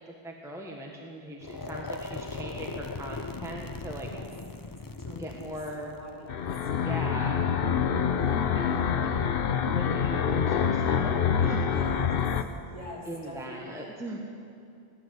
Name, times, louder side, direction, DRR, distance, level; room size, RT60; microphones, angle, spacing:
voice 1, 0.1-4.1 5.2-6.0 6.8-7.4 8.6-9.1 9.7-11.7 13.0-14.2, right 1 dB, 5° right, -1 dB, 1.3 m, -39 dB
sound 1, 1.4-7.4, left 3 dB, 25° left, 0.4 m, -39 dB
voice 2, 3.9-4.3 5.0-6.4 7.4-7.8 8.1-8.5 11.6-12.1 12.7-13.9, equal, 45° right, -5 dB, 3.8 m, -44 dB
sound 2, 6.3-12.4, left 7 dB, 65° left, 0.9 m, -26 dB
16.5 x 11.0 x 7.7 m, 2.5 s
omnidirectional pair, 1.1 m